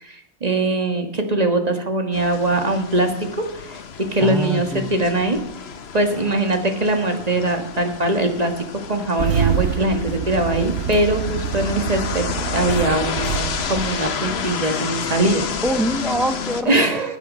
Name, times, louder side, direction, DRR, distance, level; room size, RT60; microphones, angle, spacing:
voice 1, 0.0-3.8 4.1-5.4 5.9-8.5 8.9-12.3 12.5-15.5 16.7-17.2, right 2 dB, 35° right, 6 dB, 1.6 m, -21 dB
sound 1, 2.1-16.6, left 6 dB, 65° left, 1.1 m, -30 dB
voice 2, 4.2-4.9 15.6-17.0, right 1 dB, ahead, 9 dB, 0.4 m, -24 dB
Engine starting, 9.2-14.7, right 9 dB, 80° right, 0.9 m, -26 dB
12.0 x 8.2 x 5.2 m, 0.80 s
omnidirectional pair, 1.2 m